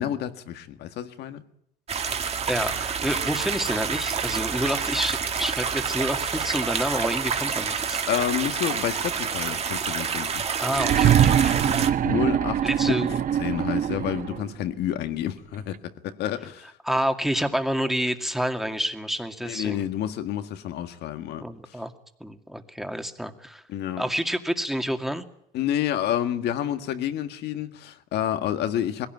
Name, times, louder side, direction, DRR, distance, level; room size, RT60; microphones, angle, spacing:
voice 1, 0.0-1.4 8.1-10.4 11.6-13.1 13.4-16.7 19.4-21.8 23.7-24.0 25.5-29.1, left 11 dB, 80° left, 1.8 m, -29 dB
sound 1, 1.9-11.9, right 6 dB, 40° right, 2.1 m, -28 dB
voice 2, 2.5-8.0 10.6-11.6 12.6-13.2 16.8-19.9 21.4-21.9 22.2-23.6 24.0-25.2, equal, ahead, 2.1 m, -28 dB
sound 2, 10.7-14.5 15.7-15.8, right 10 dB, 55° right, 0.9 m, -23 dB
21.0 x 17.0 x 9.3 m
cardioid pair, 110°, 17 cm